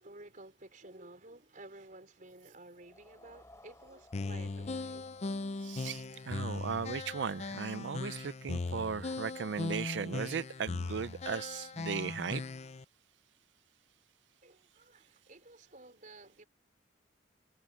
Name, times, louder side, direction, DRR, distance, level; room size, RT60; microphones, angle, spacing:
voice 1, 0.0-5.1 14.4-16.4, right 2 dB, 45° right, 4.6 m, -53 dB
sound 1, 2.8-9.0, left 1 dB, 15° left, 4.3 m, -62 dB
sound 2, 4.1-12.8, left 3 dB, 35° left, 0.5 m, -39 dB
voice 2, 5.6-12.4, right 6 dB, 70° right, 0.4 m, -37 dB
head